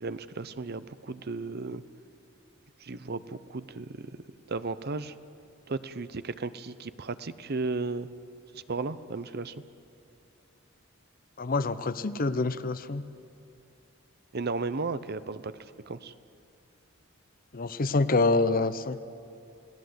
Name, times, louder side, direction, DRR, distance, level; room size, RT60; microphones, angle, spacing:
voice 1, 0.0-1.8 2.8-4.2 4.5-5.1 5.7-8.1 8.5-9.5 14.3-15.5 15.9-16.1, right 3 dB, 50° right, 14 dB, 0.7 m, -34 dB
voice 2, 11.4-13.0 17.5-19.0, left 3 dB, 45° left, 14 dB, 0.7 m, -26 dB
29.0 x 18.5 x 8.0 m, 2.6 s
head